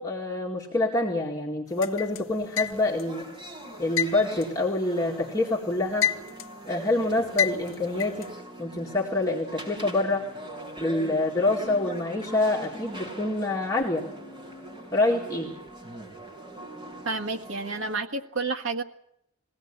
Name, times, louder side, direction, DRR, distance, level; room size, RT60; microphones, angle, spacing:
voice 1, 0.0-3.2 3.8-6.1 6.7-8.3 8.6-10.2 10.8-14.0 14.9-15.5, left 2 dB, 15° left, -3 dB, 2.1 m, -26 dB
sound 1, 1.8-3.1 4.0-5.4 5.7-6.6 7.4-8.3, left 9 dB, 65° left, 0.9 m, -28 dB
sound 2, 2.7-17.9, right 1 dB, 20° right, 4.5 m, -42 dB
voice 2, 17.0-18.8, right 3 dB, 65° right, 4 dB, 1.7 m, -30 dB
21.5 x 17.0 x 8.6 m, 0.76 s
head